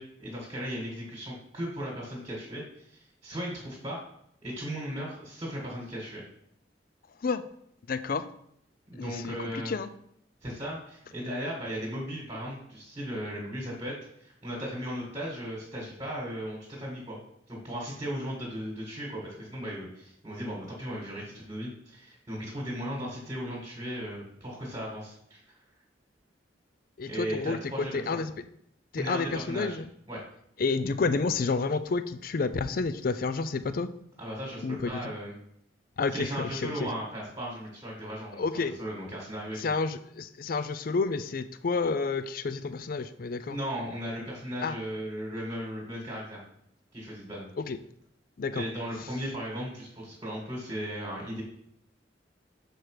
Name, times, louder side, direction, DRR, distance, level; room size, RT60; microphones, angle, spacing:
voice 1, 0.0-4.0 4.4-6.2 8.9-9.8 10.4-17.2 17.5-25.4 27.1-28.0 29.0-29.8 30.1-30.2 34.2-35.4 36.1-39.7 43.5-46.4 46.9-47.5 48.5-51.4, equal, 25° right, -3 dB, 1.7 m, -36 dB
voice 2, 7.9-8.2 8.9-9.9 27.0-28.3 28.9-29.8 30.6-33.9 34.6-34.9 36.0-36.9 38.3-38.7 39.6-43.6 44.6-44.8 47.6-47.8 48.4-48.6, left 4 dB, 50° left, 12 dB, 0.4 m, -30 dB
6.7 x 4.4 x 4.8 m, 0.72 s
head